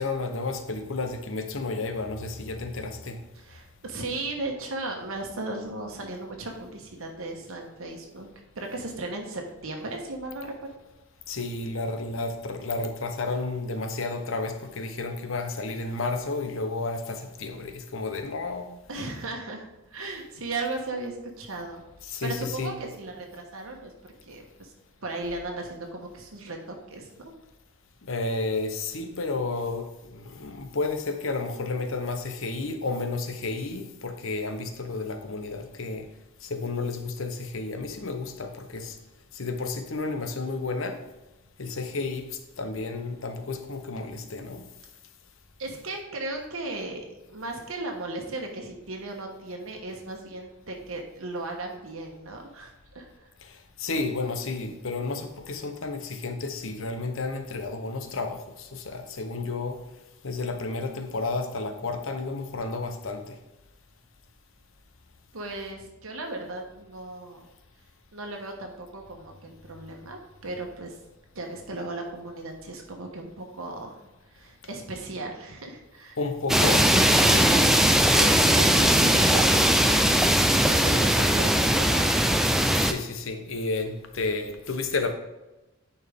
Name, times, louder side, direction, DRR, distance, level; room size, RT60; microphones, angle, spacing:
voice 1, 0.0-3.2 11.3-18.7 22.1-22.3 22.6-22.7 28.1-36.0 36.5-38.9 39.4-41.0 41.6-42.3 42.6-44.6 53.8-58.4 58.7-59.8 60.2-63.3 76.2-77.4 82.8-85.1, left 3 dB, 70° left, 7 dB, 0.8 m, -31 dB
voice 2, 3.3-8.3 8.5-10.7 18.9-21.8 22.2-23.9 24.2-24.7 25.0-27.3 45.6-53.3 65.3-67.5 68.1-71.0 71.3-73.9 74.3-76.2 77.2-77.8 78.1-80.2 80.7-82.3, right 2 dB, 80° right, 2 dB, 1.1 m, -36 dB
sound 1, 76.5-82.9, equal, ahead, 0.3 m, -20 dB
9.9 x 4.5 x 3.5 m, 1.0 s
head